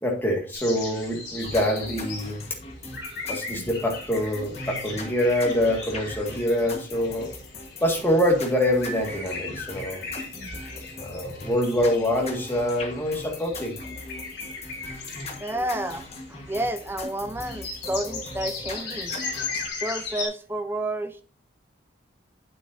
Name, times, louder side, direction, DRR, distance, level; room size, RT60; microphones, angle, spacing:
voice 1, 0.0-2.4 3.3-7.3 7.8-10.0 11.0-13.8, left 1 dB, 10° left, 1.8 m, -25 dB
sound 1, 0.5-20.3, left 4 dB, 60° left, 4.3 m, -38 dB
sound 2, 1.4-19.7, left 2 dB, 35° left, 1.4 m, -39 dB
voice 2, 2.9-3.3 11.1-11.4 15.4-19.2 19.7-21.2, right 1 dB, 10° right, 0.6 m, -31 dB
9.4 x 8.2 x 2.7 m
head